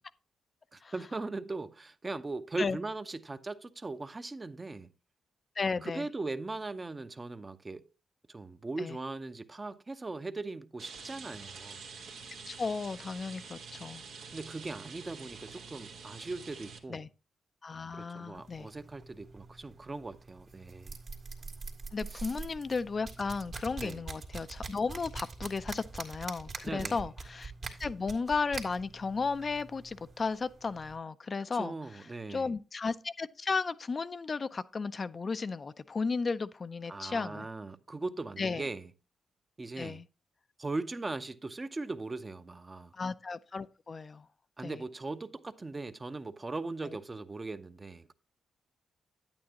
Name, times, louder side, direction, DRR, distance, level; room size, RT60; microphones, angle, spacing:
voice 1, 0.7-4.9 5.8-7.8 8.3-11.8 14.3-17.0 17.9-21.0 22.1-22.3 23.8-24.0 26.6-27.0 31.5-32.5 36.9-38.9 39.6-40.0 40.6-42.9 44.6-48.1, right 3 dB, 30° right, 0.7 m, -39 dB
voice 2, 5.6-6.1 8.8-9.0 12.5-14.0 16.9-17.1 17.6-18.7 21.9-27.5 27.8-32.0 32.3-37.5 38.4-38.6 39.8-40.1 42.9-44.3 44.6-44.8, left 4 dB, 45° left, 0.4 m, -34 dB
Rain, 10.8-16.8, right 5 dB, 85° right, 1.2 m, -47 dB
sound 1, 18.3-31.0, right 4 dB, 60° right, 1.9 m, -45 dB
9.3 x 8.8 x 2.9 m
supercardioid pair, 50°, 0 cm